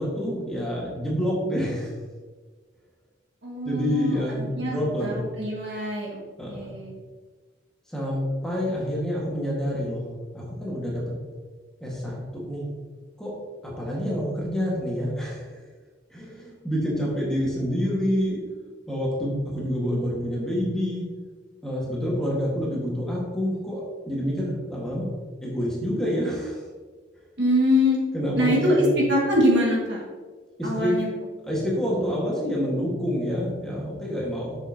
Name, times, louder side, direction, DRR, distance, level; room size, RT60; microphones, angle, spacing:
voice 1, 0.0-1.9 3.6-5.2 6.4-6.7 7.9-11.0 11.8-12.6 13.2-13.3 13.6-15.6 16.1-18.4 18.9-21.0 21.6-25.1 25.4-26.6 28.1-29.0 30.6-30.9 31.5-34.6, equal, 5° left, -5 dB, 1.5 m, -27 dB
voice 2, 3.4-7.0 27.4-28.0 28.4-28.8 29.1-30.0 30.6-31.1, equal, 70° right, -3 dB, 1.9 m, -24 dB
7.0 x 6.4 x 2.8 m, 1.4 s
head